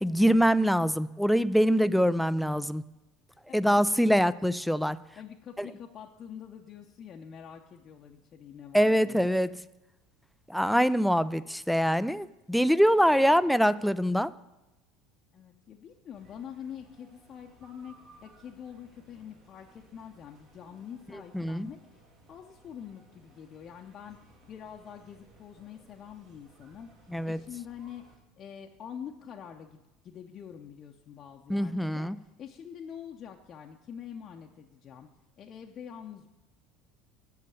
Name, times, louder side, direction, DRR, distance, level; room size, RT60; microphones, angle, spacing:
voice 1, 0.0-2.8 3.5-5.0 5.6-5.7 8.7-9.6 10.5-14.3 21.3-21.7 27.1-27.4 31.5-32.2, equal, ahead, 15 dB, 0.4 m, -24 dB
voice 2, 3.5-4.1 5.2-9.3 12.8-13.3 15.3-17.9 18.2-21.8 22.3-26.9 27.2-28.0 28.4-32.1 32.4-35.1 35.4-36.3, left 8 dB, 40° left, 1 dB, 0.7 m, -45 dB
sound 1, 16.1-28.2, right 2 dB, 60° right, 4.4 m, -60 dB
8.3 x 6.6 x 8.4 m, 1.0 s
hypercardioid pair, 70°, 0 cm